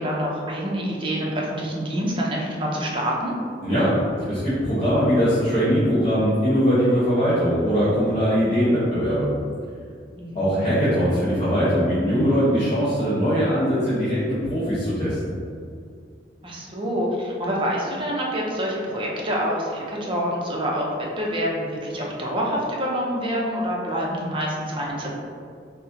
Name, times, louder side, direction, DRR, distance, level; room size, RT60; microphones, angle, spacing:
voice 1, 0.0-3.3 10.2-10.6 16.4-20.9 21.2-25.1, equal, 30° right, -2 dB, 0.6 m, -26 dB
voice 2, 3.6-9.3 10.3-15.4, equal, 35° left, -11 dB, 1.2 m, -21 dB
4.2 x 2.1 x 3.9 m, 2.2 s
head